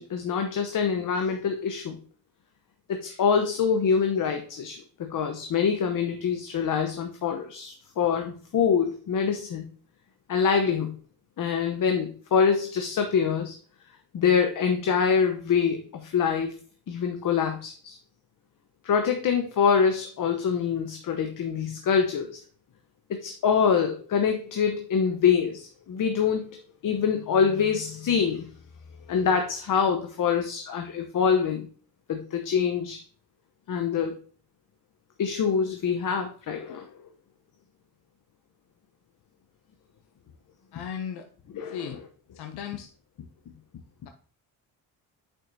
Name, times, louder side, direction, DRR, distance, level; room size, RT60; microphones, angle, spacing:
voice 1, 0.0-2.0 2.9-9.6 10.3-10.9 11.4-13.5 14.1-16.5 16.9-18.0 18.8-22.4 23.1-26.6 26.8-28.4 29.1-31.7 32.1-33.0 33.7-34.2 35.2-36.9 41.5-41.9, left 6 dB, 55° left, 5 dB, 0.9 m, -25 dB
voice 2, 40.7-41.3 41.7-42.0 42.3-42.9, left 8 dB, 80° left, 6 dB, 0.7 m, -36 dB
7.2 x 5.6 x 2.7 m, 0.42 s
cardioid pair, 75°, 38 cm